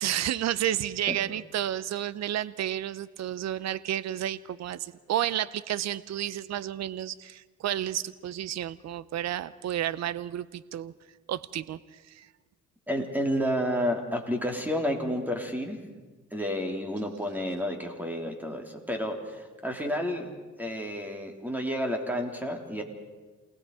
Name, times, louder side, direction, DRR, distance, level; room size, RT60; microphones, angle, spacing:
voice 1, 0.0-10.9 11.3-12.3, right 12 dB, 60° right, 17 dB, 0.7 m, -31 dB
voice 2, 12.9-15.8 16.3-20.3 20.6-22.8, equal, 5° right, 2 dB, 3.6 m, -30 dB
28.5 x 19.5 x 4.9 m, 1.3 s
cardioid pair, 90°, 30 cm